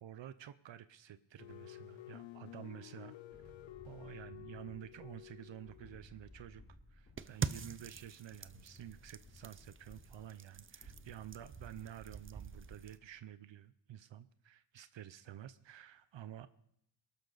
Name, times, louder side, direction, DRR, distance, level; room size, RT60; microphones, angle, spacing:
voice 1, 0.0-3.5 3.8-6.6 6.9-16.5, right 11 dB, 70° right, 14 dB, 0.7 m, -51 dB
sound 1, 1.4-6.0, left 16 dB, 70° left, 0.7 m, -52 dB
sound 2, 3.3-13.2, left 1 dB, 30° left, 6.5 m, -60 dB
sound 3, 7.2-13.0, right 6 dB, 25° right, 0.5 m, -45 dB
22.5 x 12.0 x 4.0 m, 0.72 s
wide cardioid pair, 125°, 47 cm